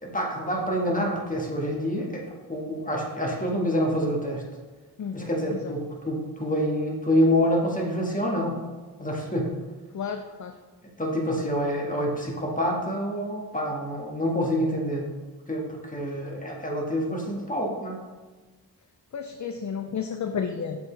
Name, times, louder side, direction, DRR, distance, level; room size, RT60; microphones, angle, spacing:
voice 1, 0.0-4.4 5.1-8.6 9.0-9.5 11.0-15.1 15.5-18.0, equal, 20° left, -1 dB, 1.8 m, -27 dB
voice 2, 5.0-5.6 9.9-10.6 19.1-20.8, left 6 dB, 45° left, 6 dB, 0.5 m, -32 dB
7.3 x 5.4 x 3.4 m, 1.3 s
cardioid pair, 70°, 42 cm